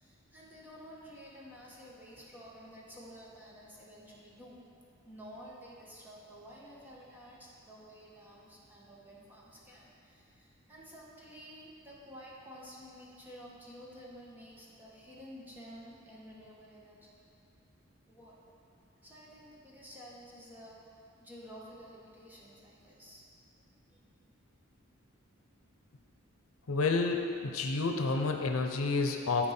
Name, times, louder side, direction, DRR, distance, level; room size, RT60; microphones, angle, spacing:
voice 1, 0.0-4.6 5.0-17.3 18.1-18.5 19.0-23.2, equal, 10° right, -6 dB, 1.4 m, -51 dB
voice 2, 26.7-29.5, left 3 dB, 85° left, 3 dB, 0.7 m, -30 dB
12.0 x 4.5 x 4.3 m, 2.5 s
head